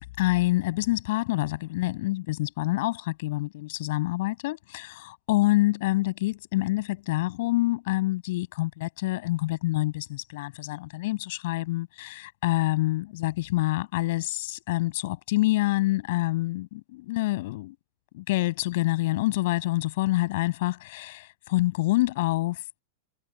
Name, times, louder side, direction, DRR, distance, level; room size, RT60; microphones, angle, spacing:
voice 1, 0.2-17.7 18.1-22.8, left 18 dB, 50° left, 6.6 m, -27 dB
figure-of-eight pair, 90°, 0 cm